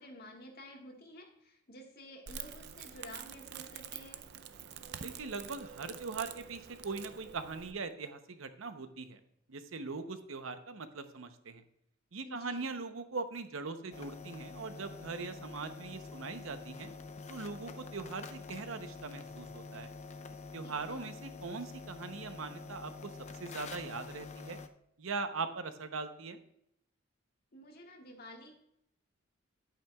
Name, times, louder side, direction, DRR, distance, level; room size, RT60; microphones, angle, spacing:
voice 1, 0.0-4.2 12.2-12.7 20.6-21.0 27.5-28.6, equal, 50° left, 1 dB, 1.7 m, -51 dB
Crackle, 2.3-7.7, right 8 dB, 55° right, 0.5 m, -47 dB
voice 2, 5.0-9.2 9.5-11.6 12.1-16.9 17.3-19.9 20.5-23.1 23.4-24.6 25.0-26.4, right 4 dB, 90° right, 9 dB, 0.8 m, -41 dB
sound 1, 13.9-24.7, left 4 dB, 35° left, 0.5 m, -47 dB
10.5 x 8.8 x 2.3 m, 0.74 s
head